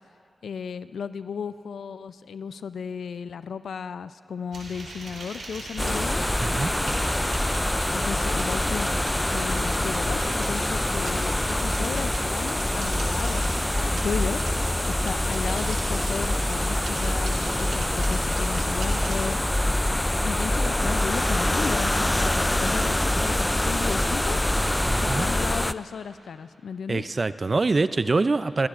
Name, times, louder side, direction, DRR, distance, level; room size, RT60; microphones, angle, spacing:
voice 1, 0.4-6.2 7.9-8.9 9.3-14.4 14.9-19.4 20.2-24.4 25.0-27.0, left 6 dB, 85° left, 13 dB, 0.4 m, -34 dB
sound 1, 4.5-19.2, right 2 dB, 85° right, 3.4 m, -39 dB
sound 2, 5.8-25.7, left 1 dB, 15° left, 0.4 m, -25 dB
voice 2, 6.4-6.7 24.9-25.3 26.9-28.7, right 3 dB, 45° right, 14 dB, 0.4 m, -24 dB
29.0 x 18.0 x 2.5 m, 2.6 s
cardioid pair, 50°, 0 cm